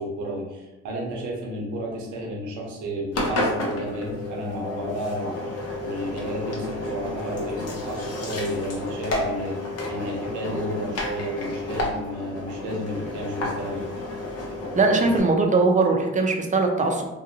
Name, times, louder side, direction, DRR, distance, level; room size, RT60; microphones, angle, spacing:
voice 1, 0.0-13.9, equal, 85° right, -2 dB, 0.8 m, -32 dB
Engine, 3.1-15.2, left 1 dB, 60° left, 0.7 m, -31 dB
voice 2, 14.8-17.1, right 3 dB, 25° right, 3 dB, 0.5 m, -20 dB
2.6 x 2.2 x 2.7 m, 1.1 s
cardioid pair, 70°, 29 cm